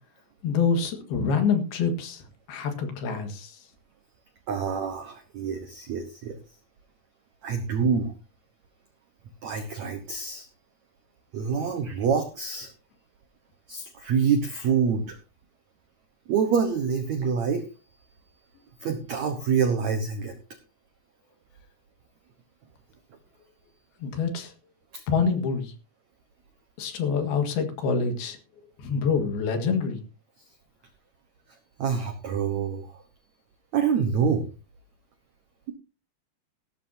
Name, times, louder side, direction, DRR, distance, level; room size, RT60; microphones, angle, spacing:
voice 1, 0.4-3.6 24.0-24.5 25.1-25.7 26.8-28.4 28.8-30.0, left 5 dB, 65° left, 6 dB, 3.4 m, -26 dB
voice 2, 4.5-6.4 7.4-8.1 9.4-10.4 11.3-12.7 13.7-15.2 16.3-17.6 18.8-20.3 24.9-25.0 31.8-32.9 33.7-34.5, right 6 dB, 85° right, 7 dB, 1.6 m, -26 dB
17.5 x 12.5 x 2.8 m, 0.34 s
omnidirectional pair, 5.2 m